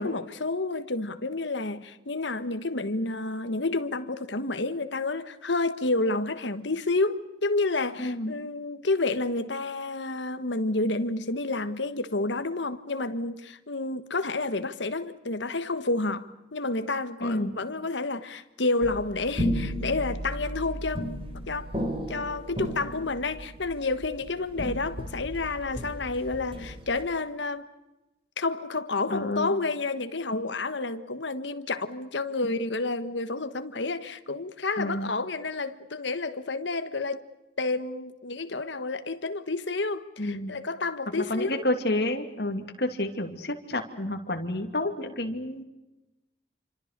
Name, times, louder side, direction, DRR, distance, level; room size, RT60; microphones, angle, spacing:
voice 1, 0.0-21.7 22.1-27.7 28.4-37.2 37.6-41.6, left 3 dB, 80° left, 1.4 m, -30 dB
voice 2, 8.0-8.3 17.2-17.5 29.1-29.5 34.8-35.1 40.2-40.6 41.2-45.6, left 1 dB, 60° left, 2.7 m, -29 dB
sound 1, 18.8-27.0, equal, 30° right, 4.0 m, -34 dB
28.0 x 25.5 x 6.8 m
head